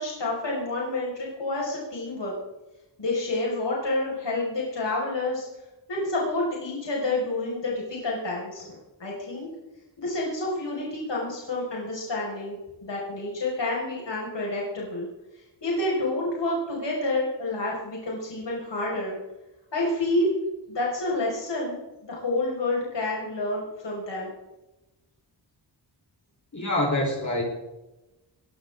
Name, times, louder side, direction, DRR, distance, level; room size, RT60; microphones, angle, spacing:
voice 1, 0.0-2.3 3.0-5.5 5.9-9.5 10.0-15.1 15.3-19.2 19.7-20.4 20.7-24.3, left 2 dB, 70° left, -4 dB, 5.8 m, -29 dB
voice 2, 26.5-27.4, left 1 dB, 40° left, -1 dB, 4.3 m, -25 dB
22.0 x 13.5 x 3.8 m, 1.0 s
wide cardioid pair, 70°, 44 cm